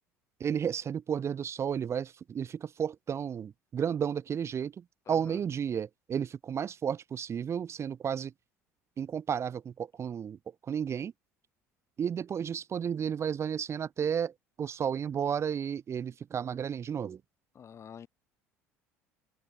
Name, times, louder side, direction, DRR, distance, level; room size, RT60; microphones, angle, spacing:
voice 1, 0.4-8.3 9.0-10.4 10.7-11.1 12.0-14.3 14.6-17.2, right 8 dB, 40° right, 0.9 m, -32 dB
voice 2, 5.1-5.4 17.5-18.1, left 8 dB, 40° left, 2.9 m, -47 dB
hypercardioid pair, 65°, 7 cm